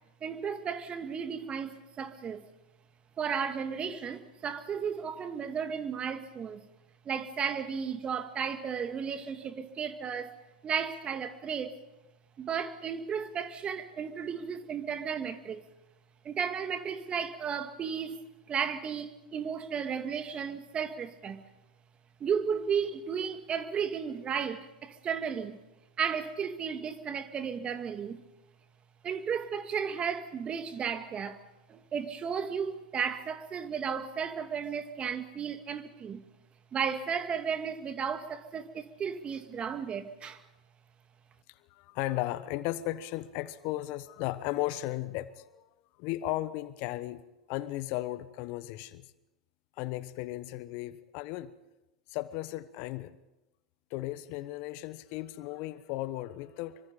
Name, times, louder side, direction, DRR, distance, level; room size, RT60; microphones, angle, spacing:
voice 1, 0.2-2.5 3.2-6.6 7.1-10.3 10.6-11.8 12.4-15.6 16.2-18.2 18.5-21.4 22.2-25.6 26.0-28.2 29.0-31.4 31.7-36.2 36.7-40.4, right 7 dB, 30° right, 2.1 m, -34 dB
voice 2, 41.5-45.6 46.0-47.2 47.5-49.1 49.8-51.5 52.1-53.2 53.9-56.8, left 16 dB, 50° left, 1.1 m, -35 dB
26.0 x 24.0 x 5.3 m
hypercardioid pair, 90°, 4 cm